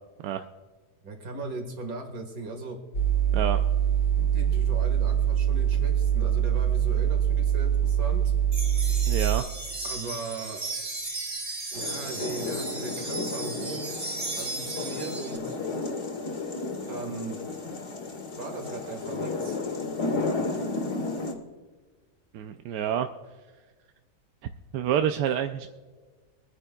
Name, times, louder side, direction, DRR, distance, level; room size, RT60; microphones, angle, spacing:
voice 1, 1.0-2.8 4.2-8.3 9.8-10.6 11.7-13.9 14.4-15.6 16.9-17.4 18.4-19.6, right 2 dB, 60° right, 4 dB, 2.3 m, -38 dB
sound 1, 2.9-9.4, right 9 dB, 70° left, 2.0 m, -24 dB
sound 2, 8.5-15.4, right 2 dB, 25° right, 1.3 m, -35 dB
voice 2, 9.1-9.5 22.3-23.1 24.7-25.7, right 9 dB, 85° right, 7 dB, 1.2 m, -27 dB
sound 3, 11.7-21.3, left 3 dB, 45° left, 2.1 m, -33 dB
23.5 x 9.8 x 2.3 m, 1.4 s
omnidirectional pair, 1.7 m